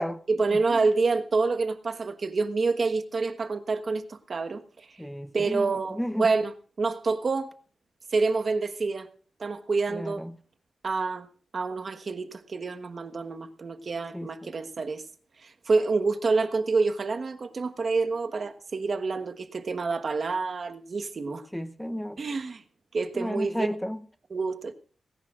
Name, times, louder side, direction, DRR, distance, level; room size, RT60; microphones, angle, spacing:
voice 1, 0.3-5.0 5.3-6.5 6.8-7.5 8.1-9.1 9.4-10.2 10.8-11.3 11.5-15.0 15.4-21.5 22.2-22.6 22.9-23.7 24.3-24.7, right 4 dB, 50° right, 1.3 m, -27 dB
voice 2, 5.0-6.3 9.9-10.3 14.1-14.5 21.5-22.2 23.1-24.0, equal, 5° left, 0.8 m, -32 dB
19.0 x 17.0 x 2.5 m
wide cardioid pair, 95°, 0 cm